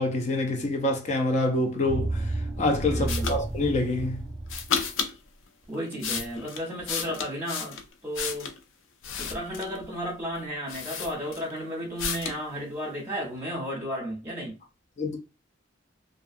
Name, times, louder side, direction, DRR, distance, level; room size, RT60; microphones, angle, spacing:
voice 1, 0.0-2.1 2.6-4.3 15.0-15.2, left 2 dB, 35° left, 0.5 m, -26 dB
sound 1, 1.9-4.7, right 2 dB, 35° right, 0.6 m, -31 dB
voice 2, 2.9-3.3 5.7-8.5 9.2-14.6, equal, 10° right, 1.0 m, -33 dB
sound 2, 3.1-3.4 4.5-5.2 5.7-8.6 9.0-9.8 10.4-10.5 10.7-11.6 12.0-12.4, left 6 dB, 90° left, 0.4 m, -32 dB
2.4 x 2.3 x 2.5 m
head